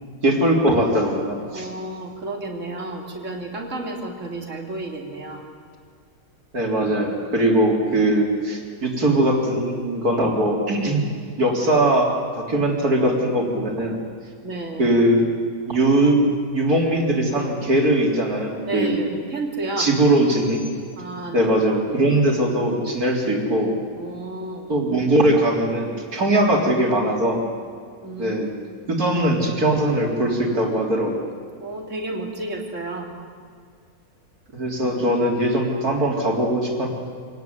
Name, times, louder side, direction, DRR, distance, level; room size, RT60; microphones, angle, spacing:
voice 1, 0.2-1.7 6.5-11.0 11.4-14.0 14.8-15.2 15.7-16.2 16.5-19.0 19.8-20.6 21.3-23.7 24.7-27.5 28.2-28.5 28.9-31.3 34.5-36.9, right 1 dB, 85° right, 0 dB, 4.2 m, -20 dB
voice 2, 1.5-5.5 14.4-15.0 18.6-19.9 21.0-21.5 23.9-24.7 28.0-28.4 31.6-33.1 34.8-35.0, right 2 dB, 55° right, 0 dB, 3.3 m, -31 dB
26.5 x 18.5 x 9.5 m, 2.1 s
omnidirectional pair, 1.6 m